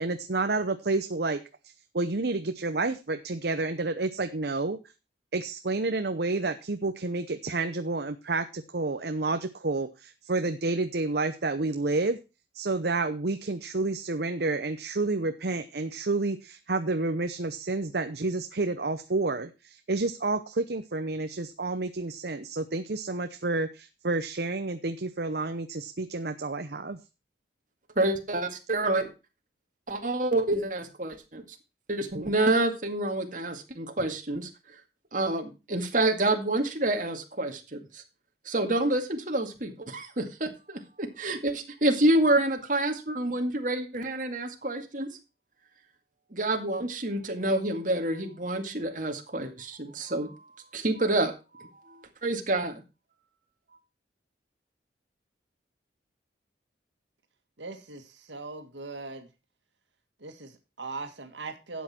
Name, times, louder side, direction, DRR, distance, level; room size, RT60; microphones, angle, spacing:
voice 1, 0.0-4.8 5.3-12.2 12.5-27.0, right 3 dB, 60° right, 8 dB, 0.8 m, -30 dB
voice 2, 28.0-29.1 29.9-31.4 31.9-34.5 35.1-38.0 38.5-45.1 46.3-50.4 50.7-52.8, right 2 dB, 45° right, 4 dB, 2.2 m, -28 dB
voice 3, 57.6-59.3 60.2-61.8, right 3 dB, 85° right, 7 dB, 2.0 m, -40 dB
12.5 x 8.4 x 4.4 m, 0.29 s
head